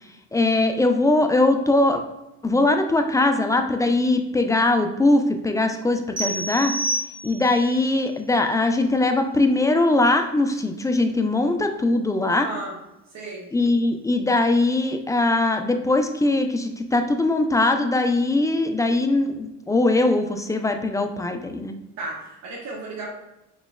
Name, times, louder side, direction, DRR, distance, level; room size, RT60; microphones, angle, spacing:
voice 1, 0.3-2.0 2.4-6.7 7.2-12.5 13.5-21.7, left 2 dB, 10° left, 5 dB, 0.3 m, -21 dB
sound 1, 6.2-7.7, right 1 dB, 20° right, 1.2 m, -28 dB
voice 2, 12.3-12.8 13.1-13.5 22.0-23.1, right 2 dB, 45° right, -4 dB, 1.1 m, -34 dB
3.9 x 3.1 x 2.3 m, 0.96 s
hypercardioid pair, 55°, 38 cm